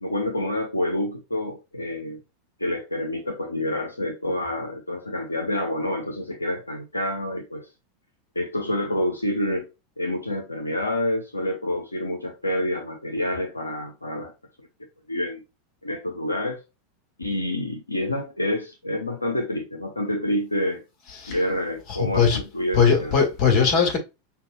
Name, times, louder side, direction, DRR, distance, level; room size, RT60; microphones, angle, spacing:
voice 1, 0.0-2.2 2.6-7.7 8.4-9.7 10.0-14.3 14.6-14.7 15.1-15.4 15.8-16.6 17.2-20.8 21.3-23.2, left 1 dB, 90° left, 0.5 m, -28 dB
voice 2, 22.0-22.4 22.8-24.0, left 6 dB, 45° left, 1.7 m, -19 dB
5.3 x 2.3 x 2.5 m
figure-of-eight pair, 85°, 0 cm